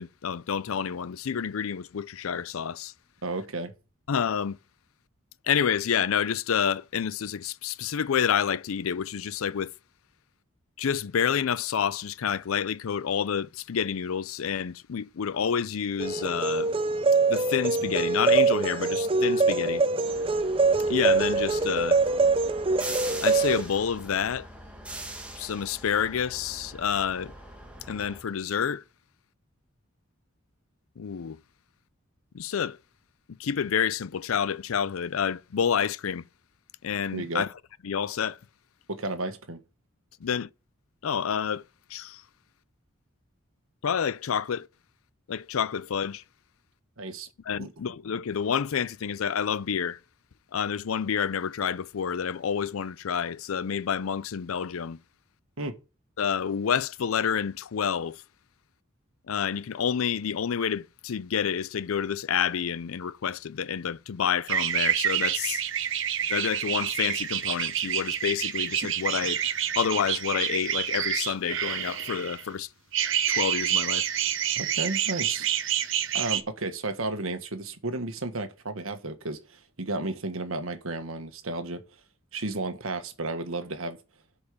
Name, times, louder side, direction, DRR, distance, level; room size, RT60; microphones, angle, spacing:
voice 1, 0.0-2.9 4.1-4.6 5.4-9.7 10.8-16.7 17.3-19.8 20.9-22.0 23.2-24.5 25.4-27.3 27.9-28.8 31.0-31.4 32.3-32.8 33.4-36.3 36.8-37.5 37.8-38.4 40.2-40.5 41.0-41.6 41.9-42.2 43.8-44.7 45.3-46.2 47.5-50.0 50.5-55.0 56.2-58.2 59.3-65.6 66.3-69.4 69.8-72.7 73.3-74.1, left 7 dB, 80° left, 0.5 m, -28 dB
voice 2, 3.2-3.7 37.1-37.4 38.9-39.6 47.0-47.3 47.6-47.7 55.6-55.8 74.6-75.5 76.1-81.8 82.3-84.0, right 2 dB, 75° right, 1.5 m, -33 dB
sound 1, 16.0-23.6, right 3 dB, 25° right, 0.5 m, -24 dB
sound 2, 20.1-28.2, right 1 dB, 5° right, 1.5 m, -42 dB
sound 3, 64.5-72.4 72.9-76.4, right 10 dB, 60° right, 0.9 m, -28 dB
8.0 x 5.5 x 6.7 m
head